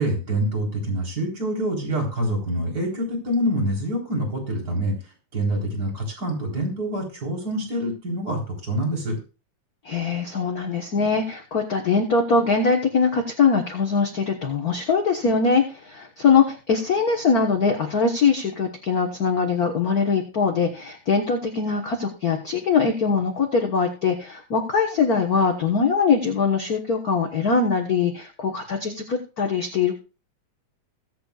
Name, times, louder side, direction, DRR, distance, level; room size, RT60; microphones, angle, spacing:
voice 1, 0.0-5.0 5.3-9.2, right 1 dB, 30° right, 0 dB, 4.3 m, -26 dB
voice 2, 9.8-30.0, left 5 dB, 50° left, 3 dB, 1.1 m, -22 dB
21.5 x 8.4 x 2.4 m, 0.33 s
omnidirectional pair, 3.4 m